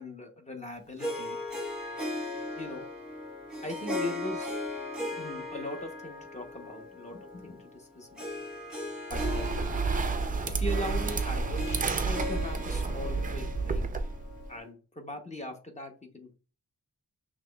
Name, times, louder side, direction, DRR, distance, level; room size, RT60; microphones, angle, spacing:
voice 1, 0.0-1.4 2.6-2.9 3.6-4.5 5.1-8.4 9.1-9.5 10.5-13.8 14.5-16.3, left 1 dB, 20° left, 4 dB, 0.8 m, -40 dB
Harp, 1.0-14.6, left 2 dB, 5° right, 1.2 m, -38 dB
sound 1, 9.1-14.5, right 4 dB, 25° right, 0.4 m, -30 dB
5.8 x 3.1 x 2.3 m, 0.35 s
wide cardioid pair, 140°, 33 cm